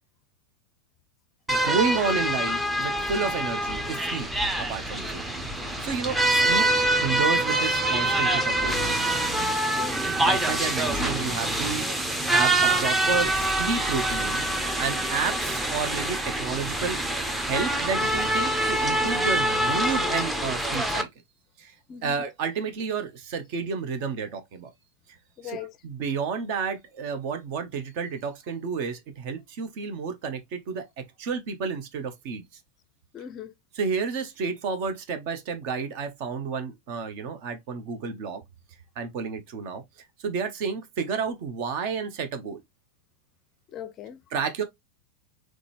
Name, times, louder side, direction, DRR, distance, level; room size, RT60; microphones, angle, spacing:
sound 1, 1.5-21.0, right 1 dB, 5° right, 0.7 m, -25 dB
voice 1, 1.5-4.3 4.6-5.3 5.5-9.0 10.2-14.4 14.8-17.0 17.3-21.1 21.6-21.7 22.0-24.7 25.4-25.6 25.8-32.6 33.7-38.4 39.0-39.8 40.2-42.6 44.3-44.6, right 5 dB, 45° right, 0.9 m, -31 dB
voice 2, 9.7-10.1 21.9-22.1 25.4-25.7 33.1-33.5 43.7-44.2, left 8 dB, 30° left, 0.5 m, -38 dB
3.9 x 3.1 x 3.1 m
figure-of-eight pair, 90°, 0 cm